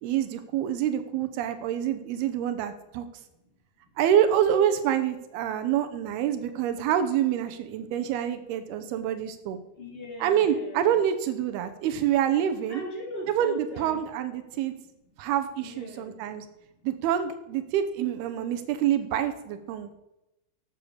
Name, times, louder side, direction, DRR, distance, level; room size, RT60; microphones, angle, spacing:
voice 1, 0.0-3.1 4.0-9.6 10.2-12.8 13.3-14.7 15.2-16.5 16.8-19.9, right 10 dB, 90° right, 9 dB, 2.9 m, -26 dB
voice 2, 9.8-11.0 12.7-14.1 15.6-16.1 19.7-19.9, equal, 20° left, 0 dB, 2.1 m, -40 dB
12.0 x 8.0 x 6.9 m, 0.91 s
omnidirectional pair, 4.5 m